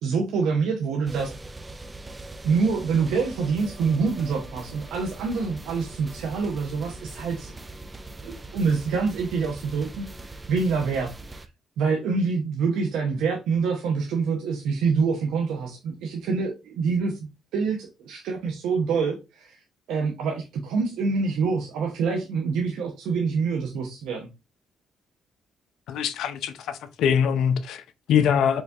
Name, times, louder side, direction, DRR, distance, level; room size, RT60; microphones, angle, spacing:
voice 1, 0.0-1.3 2.4-7.5 8.2-11.1 11.8-17.2 17.5-19.6 19.9-24.3, right 5 dB, 90° right, 0.7 m, -26 dB
sound 1, 1.1-11.5, right 2 dB, 20° right, 0.4 m, -41 dB
voice 2, 25.9-28.6, left 8 dB, 80° left, 0.4 m, -23 dB
4.6 x 2.3 x 2.6 m
cardioid pair, 90°, 0 cm